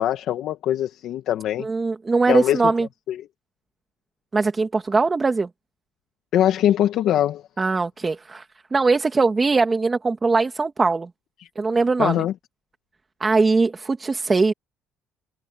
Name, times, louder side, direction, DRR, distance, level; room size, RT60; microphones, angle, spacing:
voice 1, 0.0-1.7 2.3-2.7 3.1-3.3 6.3-7.4 11.4-11.5 12.0-12.3, left 11 dB, 65° left, 1.6 m, -22 dB
voice 2, 1.6-2.9 4.3-5.5 7.6-8.4 8.7-11.1 11.6-12.2 13.2-14.5, right 4 dB, 20° right, 2.4 m, -21 dB
cardioid pair, 120°, 0 cm